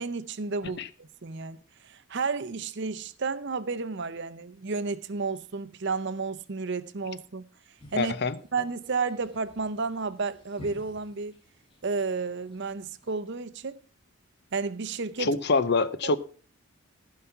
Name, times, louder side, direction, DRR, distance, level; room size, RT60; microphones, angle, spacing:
voice 1, 0.0-1.6 1.8-7.4 7.9-8.1 8.5-11.3 11.8-13.8 14.5-15.4 16.0-16.1, right 4 dB, 50° right, 0.6 m, -32 dB
sound 1, 7.8-13.1, equal, 25° left, 1.7 m, -53 dB
voice 2, 8.0-8.4 15.2-16.2, left 3 dB, 50° left, 0.6 m, -25 dB
15.0 x 5.8 x 5.6 m
head